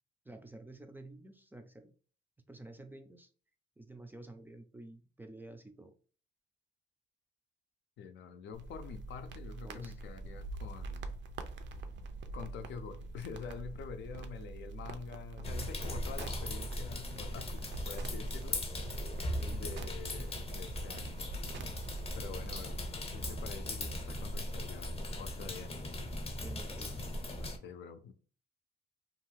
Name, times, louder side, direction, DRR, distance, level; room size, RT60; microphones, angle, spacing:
voice 1, 0.3-1.9 2.5-3.3 3.8-5.9 9.6-10.0 19.4-19.6 26.3-27.0, right 2 dB, 10° right, 0.4 m, -50 dB
voice 2, 8.0-11.1 12.3-18.6 19.5-21.2 22.1-22.8 23.1-25.7 27.4-28.1, left 6 dB, 65° left, 0.5 m, -47 dB
sound 1, 8.5-22.6, right 3 dB, 65° right, 0.5 m, -45 dB
sound 2, 15.4-27.6, left 1 dB, 30° left, 0.7 m, -39 dB
2.6 x 2.3 x 3.1 m
cardioid pair, 90°, 20 cm